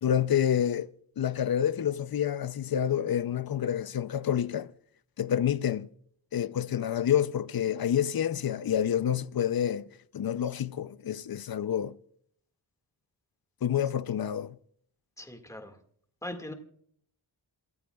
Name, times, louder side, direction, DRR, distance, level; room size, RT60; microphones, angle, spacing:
voice 1, 0.0-0.9 1.2-4.7 5.2-5.9 6.3-9.9 10.1-12.0 13.6-14.6, left 9 dB, 50° left, 0.6 m, -28 dB
voice 2, 15.2-15.8 16.2-16.5, left 1 dB, 5° left, 1.9 m, -40 dB
28.0 x 14.5 x 2.4 m
wide cardioid pair, 100°, 46 cm